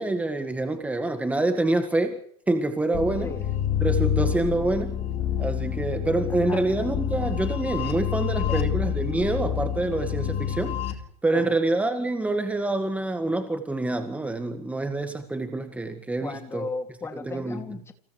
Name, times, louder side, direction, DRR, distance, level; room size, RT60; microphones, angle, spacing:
voice 1, 0.0-2.2 2.5-3.3 3.8-5.0 5.4-10.8 11.2-16.6 17.1-17.6, right 2 dB, 5° right, 7 dB, 1.8 m, -26 dB
sound 1, 2.9-10.9, left 10 dB, 30° left, 3.7 m, -28 dB
voice 2, 8.4-8.7 11.3-11.6 15.8-15.9 16.2-17.9, left 4 dB, 15° left, 7 dB, 2.5 m, -36 dB
30.0 x 27.5 x 3.3 m, 0.66 s
figure-of-eight pair, 100°, 21 cm